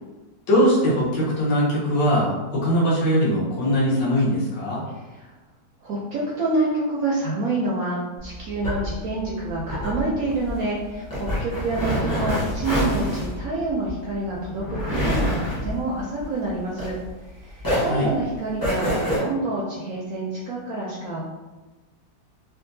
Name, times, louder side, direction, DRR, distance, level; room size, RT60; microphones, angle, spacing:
voice 1, 0.5-4.8 17.8-18.1, equal, 75° left, -7 dB, 1.6 m, -21 dB
voice 2, 5.8-17.0 17.4-21.2, right 2 dB, 75° right, -4 dB, 0.8 m, -27 dB
sound 1, 8.2-17.3 17.6-19.2, equal, 20° left, 0.6 m, -27 dB
3.6 x 2.3 x 2.6 m, 1.2 s
omnidirectional pair, 1.9 m